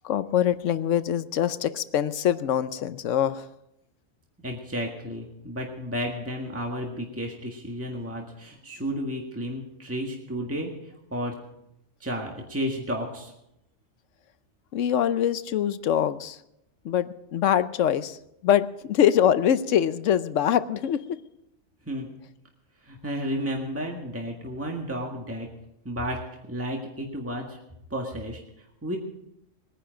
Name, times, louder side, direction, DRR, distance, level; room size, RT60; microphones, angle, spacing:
voice 1, 0.0-3.5 14.7-16.4 16.8-18.2 18.4-21.2, left 10 dB, 75° left, 14 dB, 1.0 m, -24 dB
voice 2, 4.4-11.3 12.0-13.3 21.9-22.1 22.8-25.5 25.9-26.2 26.5-27.6 27.9-29.0, equal, 10° right, 0 dB, 1.7 m, -32 dB
21.0 x 10.0 x 5.1 m, 0.82 s
omnidirectional pair, 1.3 m